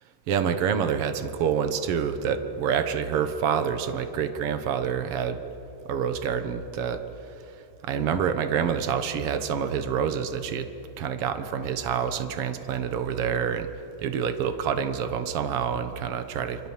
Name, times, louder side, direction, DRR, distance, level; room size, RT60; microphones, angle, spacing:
voice 1, 0.3-5.4 5.8-7.0 7.8-10.7 11.0-13.7 14.0-16.7, right 7 dB, 80° right, 8 dB, 1.3 m, -27 dB
29.5 x 24.5 x 7.3 m, 3.0 s
omnidirectional pair, 4.4 m